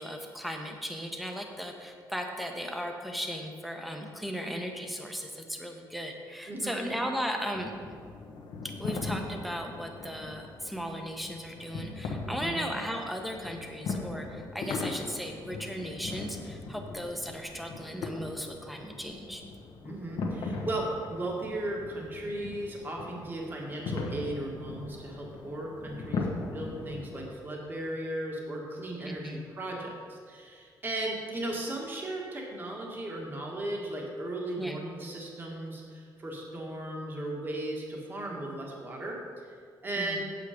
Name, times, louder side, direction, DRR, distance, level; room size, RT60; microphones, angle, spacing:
voice 1, 0.0-7.7 8.8-19.4 29.0-29.4 34.6-34.8 40.0-40.2, equal, ahead, 2 dB, 0.9 m, -36 dB
voice 2, 6.5-6.8 12.2-12.6 19.8-20.8 21.1-26.3 26.5-39.2 39.8-40.2, right 1 dB, 25° right, -2 dB, 1.6 m, -36 dB
sound 1, 7.5-27.3, left 3 dB, 80° left, 1.2 m, -39 dB
8.4 x 8.1 x 5.0 m, 2.1 s
cardioid pair, 150°, 8 cm